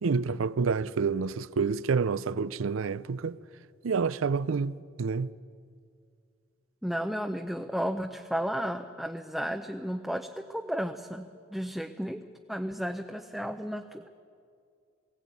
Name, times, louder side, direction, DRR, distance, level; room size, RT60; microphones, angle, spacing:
voice 1, 0.0-3.4 3.8-5.3, right 5 dB, 90° right, 0.5 m, -28 dB
voice 2, 6.8-12.2 12.5-14.1, equal, ahead, 0.6 m, -33 dB
20.5 x 16.0 x 9.4 m
head